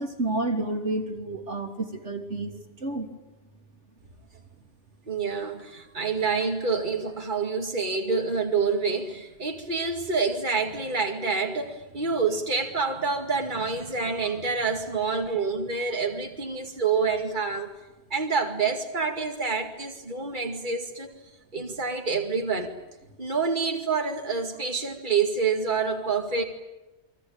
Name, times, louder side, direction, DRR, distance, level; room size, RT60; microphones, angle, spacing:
voice 1, 0.0-3.1, right 2 dB, 85° right, 3 dB, 3.3 m, -30 dB
voice 2, 5.1-17.7 18.1-21.1 21.5-22.7 23.2-26.4, right 4 dB, 45° right, 4 dB, 2.5 m, -27 dB
29.5 x 22.5 x 8.8 m, 1.0 s
omnidirectional pair, 1.2 m